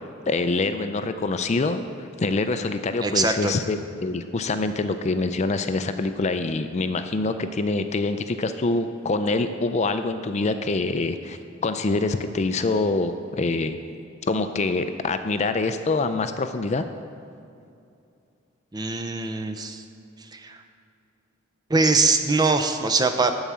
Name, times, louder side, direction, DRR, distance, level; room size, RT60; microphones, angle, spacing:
voice 1, 0.3-1.8 2.2-13.8 14.3-16.8, left 3 dB, 35° left, 9 dB, 0.4 m, -25 dB
voice 2, 3.0-3.5 18.7-19.8 20.3-20.6 21.7-23.3, right 3 dB, 20° right, 7 dB, 0.5 m, -22 dB
12.5 x 4.8 x 7.4 m, 2.5 s
head